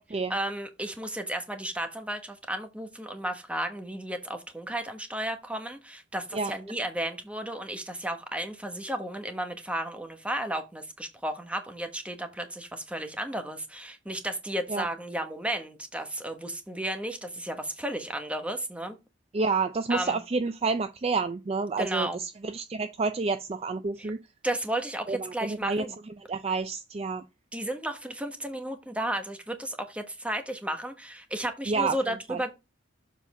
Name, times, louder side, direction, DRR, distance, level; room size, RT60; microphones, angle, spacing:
voice 1, 0.3-19.0 19.9-20.2 21.8-22.2 24.0-24.1 24.4-25.9 27.5-32.5, right 1 dB, 5° right, 1.0 m, -33 dB
voice 2, 19.3-24.2 25.1-25.8 26.3-27.2 31.7-32.0 32.3-32.4, right 4 dB, 30° right, 0.4 m, -29 dB
7.2 x 4.2 x 5.4 m
head